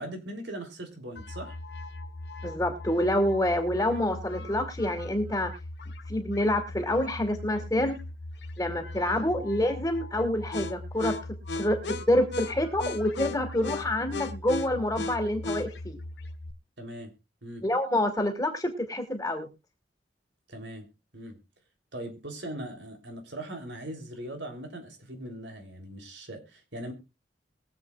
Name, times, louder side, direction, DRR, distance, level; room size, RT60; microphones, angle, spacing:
voice 1, 0.0-1.5 9.3-9.4 16.8-17.1 17.4-17.6 20.5-20.9 21.1-21.4 21.9-26.9, right 1 dB, 85° right, 5 dB, 3.3 m, -40 dB
sound 1, 1.2-16.5, left 2 dB, 80° left, 1.2 m, -38 dB
voice 2, 2.4-5.5 6.1-8.0 8.6-11.1 11.6-16.0 17.6-19.5, left 1 dB, 20° left, 4 dB, 2.1 m, -27 dB
23.0 x 7.7 x 2.4 m, 0.26 s
head